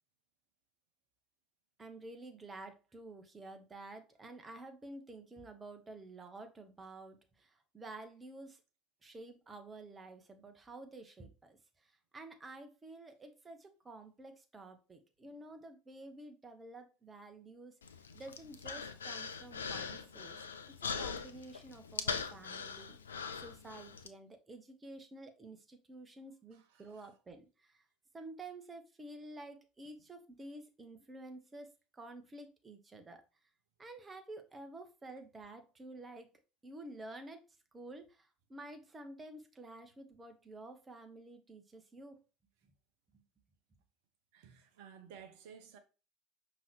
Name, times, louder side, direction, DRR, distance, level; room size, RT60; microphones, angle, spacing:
voice 1, 1.8-8.6 9.0-17.7 18.1-23.0 23.4-27.8 28.1-33.2 33.8-36.3 36.6-37.5 37.7-42.2 43.1-43.2, right 2 dB, 20° right, 0.9 m, -51 dB
Human voice, 17.8-24.1, left 5 dB, 80° left, 0.3 m, -41 dB
voice 2, 26.5-27.1 29.8-30.0 44.3-45.8, right 7 dB, 60° right, 0.8 m, -55 dB
5.4 x 2.9 x 3.2 m
figure-of-eight pair, 65°, 0 cm